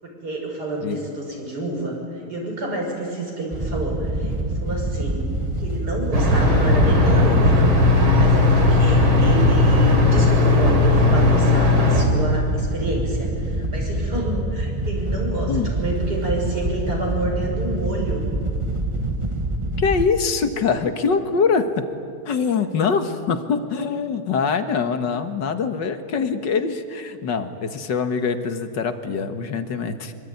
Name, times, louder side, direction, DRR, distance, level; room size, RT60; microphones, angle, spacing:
voice 1, 0.0-5.2 5.6-7.7 8.1-18.2, right 1 dB, 45° right, 0 dB, 6.5 m, -29 dB
Wind / Boat Water vehicle, 3.5-20.0, right 1 dB, 20° right, 0.9 m, -26 dB
sound 1, 6.1-12.1, left 2 dB, 70° right, 4.1 m, -16 dB
voice 2, 19.8-21.9 22.3-30.1, left 5 dB, 60° left, 8 dB, 2.0 m, -23 dB
25.5 x 23.5 x 9.5 m, 2.5 s
omnidirectional pair, 2.3 m